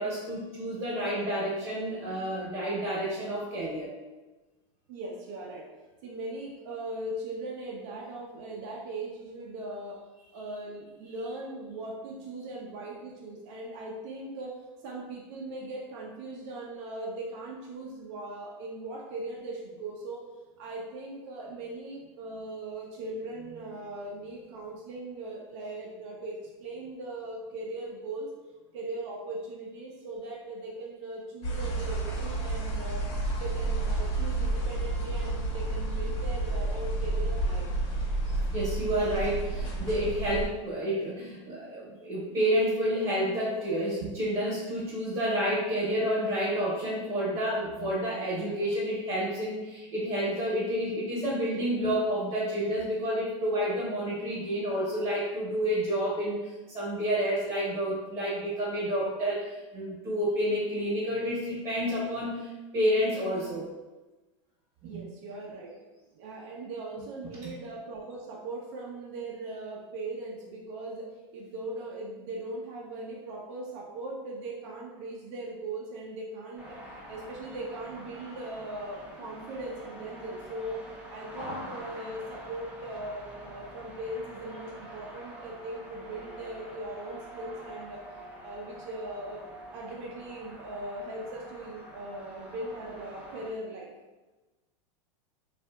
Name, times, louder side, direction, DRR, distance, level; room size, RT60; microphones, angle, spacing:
voice 1, 0.0-3.9 23.5-23.6 38.5-56.4 56.7-59.4 59.7-63.6 64.9-65.1 67.4-67.5, equal, 35° right, -7 dB, 0.9 m, -29 dB
voice 2, 4.9-5.6 6.0-10.0 10.3-14.6 14.8-20.2 20.6-28.3 28.7-33.1 33.3-37.7 64.8-65.8 66.1-76.8 77.1-88.0 88.4-93.9, right 2 dB, 65° right, -2 dB, 0.5 m, -39 dB
sound 1, 31.4-40.5, right 2 dB, 60° left, 1.1 m, -30 dB
sound 2, 76.6-93.5, equal, 5° right, 0.5 m, -46 dB
2.7 x 2.4 x 2.2 m, 1.1 s
supercardioid pair, 130°, 16 cm